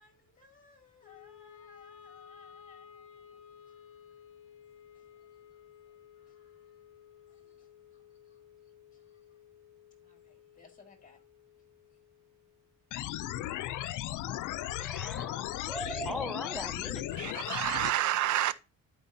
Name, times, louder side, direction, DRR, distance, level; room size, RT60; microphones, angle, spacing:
voice 1, 0.0-4.1 4.9-6.8 7.3-9.4 10.0-11.2, left 5 dB, 25° left, 1.9 m, -63 dB
Wind instrument woodwind instrument, 1.0-13.3, left 8 dB, 45° left, 1.2 m, -56 dB
sound 1, 12.9-17.9, left 14 dB, 80° left, 0.5 m, -36 dB
voice 2, 14.8-17.1, equal, ahead, 0.9 m, -39 dB
voice 3, 17.1-18.5, right 13 dB, 75° right, 0.6 m, -29 dB
11.0 x 4.4 x 2.7 m
cardioid pair, 90°, 30 cm